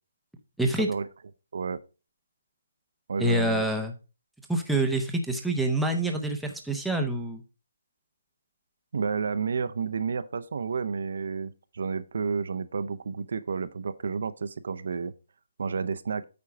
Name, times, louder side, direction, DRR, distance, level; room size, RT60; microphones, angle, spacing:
voice 1, 0.6-0.9 3.2-3.9 4.5-7.4, right 1 dB, ahead, 0.6 m, -26 dB
voice 2, 3.1-3.7 8.9-15.1 15.6-16.2, right 5 dB, 55° right, 0.6 m, -31 dB
8.5 x 4.5 x 4.9 m
hypercardioid pair, 170°, 0 cm